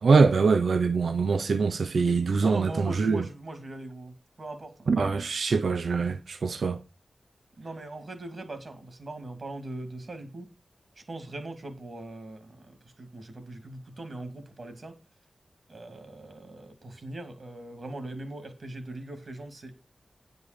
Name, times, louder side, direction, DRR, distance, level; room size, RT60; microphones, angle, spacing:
voice 1, 0.0-3.2 4.9-6.8, right 4 dB, 75° right, 0.8 m, -23 dB
voice 2, 2.4-4.9 7.6-10.5 11.1-14.9 15.7-19.7, right 2 dB, 50° right, 2.5 m, -40 dB
9.8 x 5.4 x 6.7 m
wide cardioid pair, 95°, 0 cm